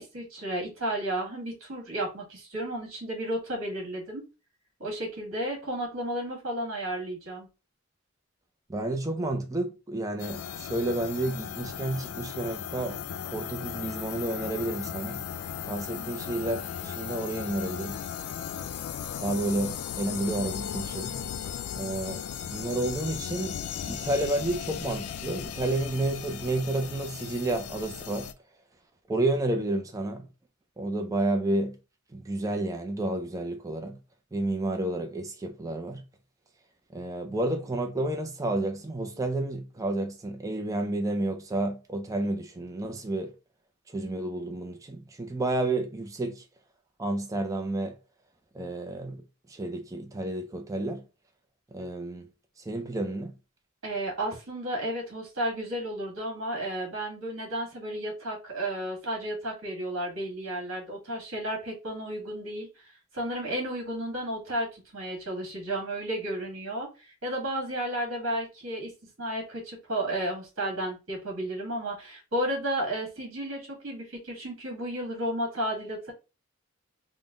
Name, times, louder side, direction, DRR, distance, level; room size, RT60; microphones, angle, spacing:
voice 1, 0.0-4.2 4.8-7.5 15.9-16.1 53.8-68.9 69.2-76.1, right 1 dB, 65° right, 1.8 m, -33 dB
voice 2, 8.7-13.0 13.3-15.2 15.7-18.0 19.2-21.2 21.7-28.3 29.1-30.3 30.8-31.8 32.1-34.0 34.3-36.0 36.9-43.3 43.9-46.4 47.0-48.0 48.5-49.2 49.5-51.0 51.7-52.3 52.6-53.3, right 2 dB, 15° right, 0.4 m, -31 dB
sound 1, 10.2-28.3, left 8 dB, 80° left, 0.4 m, -36 dB
3.8 x 2.1 x 3.5 m
head